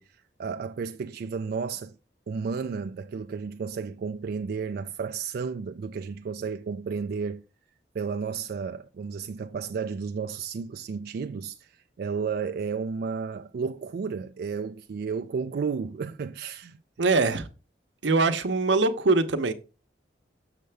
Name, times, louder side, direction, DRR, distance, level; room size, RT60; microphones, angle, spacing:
voice 1, 0.0-2.0 2.3-7.4 7.9-16.8, right 5 dB, 60° right, 0.3 m, -32 dB
voice 2, 17.0-17.5 18.0-19.5, right 3 dB, 85° right, 0.7 m, -22 dB
6.6 x 6.5 x 3.3 m
head